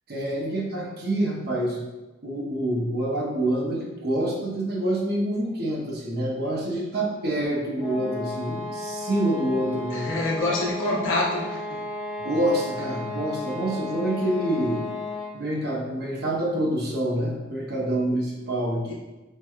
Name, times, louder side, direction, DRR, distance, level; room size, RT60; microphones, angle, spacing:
voice 1, 0.1-1.8 2.2-10.1 10.8-11.1 12.2-14.8 15.3-18.9, right 1 dB, 55° right, -2 dB, 0.7 m, -27 dB
sound 1, 7.8-15.5, left 2 dB, 5° right, 0.6 m, -34 dB
voice 2, 9.9-11.6 18.9-19.0, left 2 dB, 85° left, -4 dB, 0.8 m, -26 dB
4.5 x 2.2 x 2.3 m, 1.1 s
head